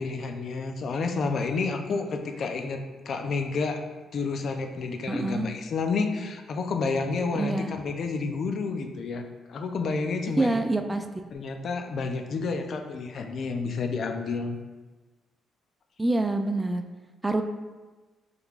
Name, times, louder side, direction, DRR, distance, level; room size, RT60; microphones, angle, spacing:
voice 1, 0.0-3.8 4.1-10.6 11.3-14.6, left 4 dB, 60° left, 5 dB, 0.4 m, -30 dB
voice 2, 5.1-5.5 7.4-7.7 10.4-11.0 16.0-16.8 17.2-17.4, right 2 dB, 15° right, 6 dB, 0.3 m, -26 dB
5.1 x 3.3 x 2.4 m, 1.2 s
cardioid pair, 90°, 0 cm